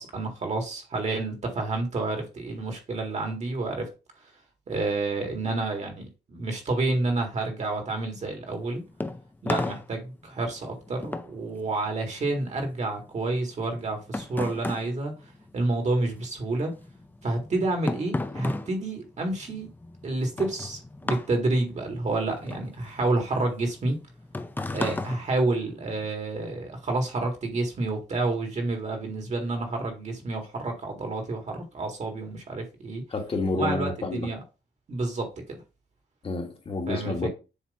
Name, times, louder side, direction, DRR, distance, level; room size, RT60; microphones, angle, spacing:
voice 1, 0.0-3.9 4.7-8.8 9.4-15.1 15.5-16.7 17.2-19.7 20.0-24.0 24.7-33.0 33.5-34.4 34.9-35.3 36.9-37.3, right 2 dB, 40° right, 1.9 m, -29 dB
sound 1, 8.5-16.2 16.4-26.1, left 2 dB, 10° left, 0.5 m, -35 dB
voice 2, 33.1-34.3 36.2-37.3, left 3 dB, 30° left, 1.6 m, -29 dB
7.2 x 3.1 x 5.2 m
cardioid pair, 140°, 18 cm